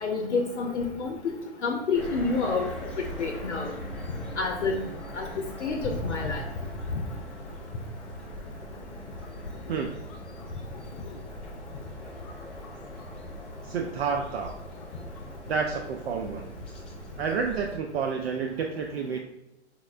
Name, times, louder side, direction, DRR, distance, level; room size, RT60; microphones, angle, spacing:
voice 1, 0.0-1.2 1.6-2.7 3.2-3.7 4.4-4.8 5.2-5.3 5.6-6.4, left 4 dB, 90° left, 3 dB, 0.5 m, -28 dB
sound 1, 1.9-17.8, equal, 5° left, 0.4 m, -41 dB
voice 2, 13.6-14.5 15.5-16.5 17.2-19.2, right 5 dB, 65° right, 3 dB, 0.4 m, -29 dB
4.8 x 2.1 x 2.4 m, 0.92 s
hypercardioid pair, 125°, 34 cm